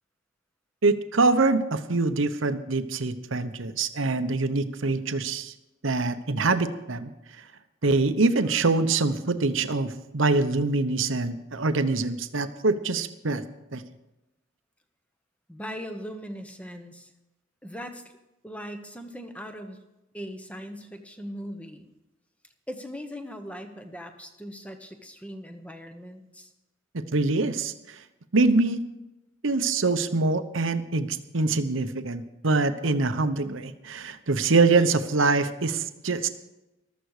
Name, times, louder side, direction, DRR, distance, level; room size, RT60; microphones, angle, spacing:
voice 1, 0.8-5.5 5.8-7.1 7.8-13.4 13.7-13.8 26.9-28.0 28.3-28.8 29.4-36.3, right 3 dB, 75° right, 10 dB, 0.9 m, -24 dB
voice 2, 15.5-17.1 17.6-18.0 18.4-19.8 20.1-21.9 22.7-26.5, equal, 5° left, 7 dB, 1.0 m, -39 dB
14.5 x 13.0 x 4.9 m, 0.96 s
head